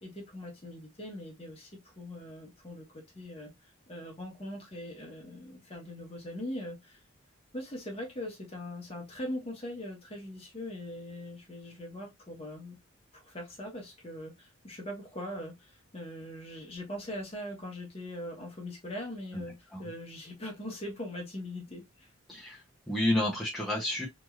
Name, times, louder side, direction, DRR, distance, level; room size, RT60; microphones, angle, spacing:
voice 1, 0.0-7.0 7.5-12.8 13.1-22.1, left 1 dB, 25° left, 1.0 m, -41 dB
voice 2, 22.3-24.1, left 1 dB, ahead, 0.7 m, -30 dB
3.0 x 2.6 x 2.3 m
head